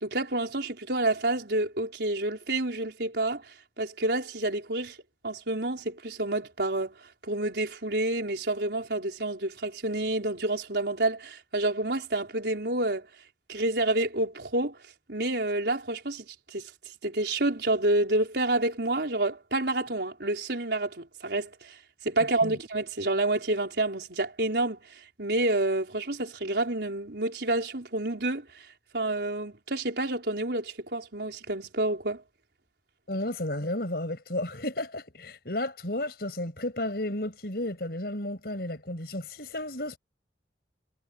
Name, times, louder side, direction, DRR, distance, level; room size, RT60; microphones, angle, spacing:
voice 1, 0.0-3.4 3.8-5.0 5.2-6.9 7.2-13.1 13.5-14.8 15.1-16.2 16.5-16.7 17.0-21.8 22.0-24.8 25.2-28.7 28.9-32.2, right 2 dB, 70° right, 4.5 m, -28 dB
voice 2, 33.1-40.0, left 1 dB, 60° left, 6.0 m, -33 dB
head